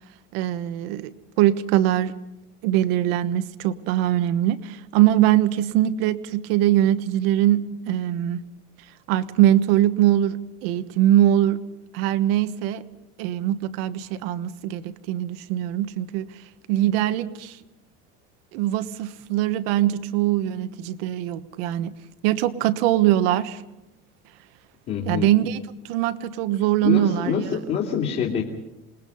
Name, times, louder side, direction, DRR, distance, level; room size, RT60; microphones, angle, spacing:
voice 1, 0.3-2.1 2.6-8.4 9.1-11.6 11.9-12.8 13.2-16.3 16.7-17.6 18.5-21.9 22.2-23.6 25.1-27.4, right 13 dB, 75° right, 12 dB, 1.3 m, -22 dB
voice 2, 24.9-25.3 26.8-28.4, left 7 dB, 40° left, -2 dB, 2.7 m, -25 dB
27.5 x 20.0 x 5.5 m, 0.94 s
cardioid pair, 170°, 29 cm